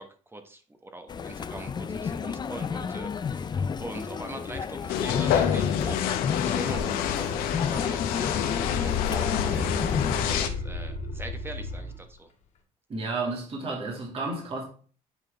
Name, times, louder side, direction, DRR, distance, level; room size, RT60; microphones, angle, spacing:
voice 1, 0.0-6.0 6.3-9.9 10.2-12.3, right 2 dB, 15° right, 1.3 m, -42 dB
sound 1, 1.1-10.5, left 6 dB, 30° left, 0.5 m, -31 dB
sound 2, 4.9-10.5, left 10 dB, 80° left, 0.8 m, -28 dB
sound 3, 6.7-6.8 7.2-7.8 8.1-12.0, left 3 dB, 60° left, 2.1 m, -34 dB
voice 2, 12.9-14.6, right 3 dB, 40° right, 2.2 m, -32 dB
9.0 x 4.1 x 3.4 m
supercardioid pair, 85°, 15 cm